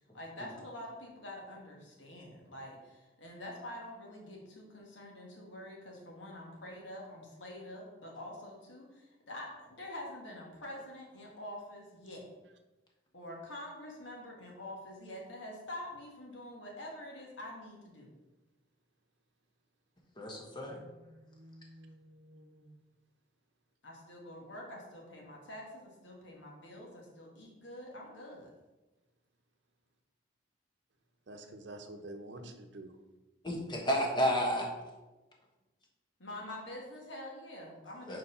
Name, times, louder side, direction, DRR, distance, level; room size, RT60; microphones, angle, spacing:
voice 1, 0.1-12.3 13.1-18.1 23.8-28.5 36.2-38.2, left 1 dB, 75° left, -1 dB, 1.7 m, -46 dB
voice 2, 20.2-20.8 33.4-34.7 38.1-38.2, equal, 25° left, 0 dB, 1.2 m, -31 dB
voice 3, 20.7-22.8 31.3-33.0, right 1 dB, 65° right, 6 dB, 0.8 m, -49 dB
4.6 x 4.6 x 5.5 m, 1.1 s
head